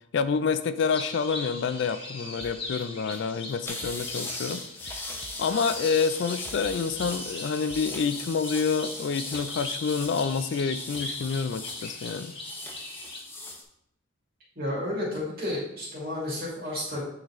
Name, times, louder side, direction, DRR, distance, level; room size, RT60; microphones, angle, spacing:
voice 1, 0.1-5.1 5.4-12.3, left 5 dB, 60° left, 12 dB, 0.4 m, -28 dB
sound 1, 0.8-13.2, left 2 dB, 25° left, 1.1 m, -40 dB
sound 2, 2.4-2.9 3.1-3.2 3.5-3.6 3.8-4.3 4.5-5.7 5.9-6.0 6.3-8.0, right 3 dB, 35° right, 0.4 m, -48 dB
sound 3, 3.6-13.6, left 2 dB, 10° left, 0.6 m, -39 dB
voice 2, 14.6-17.0, left 1 dB, 50° right, -5 dB, 2.3 m, -31 dB
8.7 x 3.9 x 3.1 m, 0.78 s
head